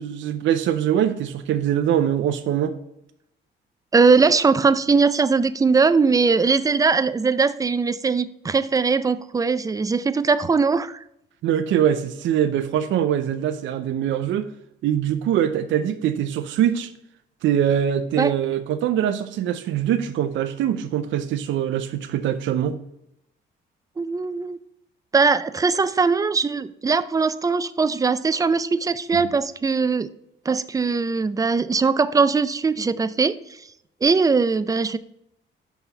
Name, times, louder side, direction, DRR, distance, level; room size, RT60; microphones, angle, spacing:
voice 1, 0.0-2.7 11.4-14.5 14.8-16.9 17.4-22.8 29.1-29.2, right 10 dB, 70° right, 9 dB, 0.5 m, -23 dB
voice 2, 3.9-11.0 18.2-18.3 24.0-24.6 25.1-30.1 30.5-33.4 34.0-35.0, right 4 dB, 15° right, 14 dB, 0.4 m, -20 dB
5.6 x 4.1 x 5.7 m, 0.81 s
cardioid pair, 90°, 20 cm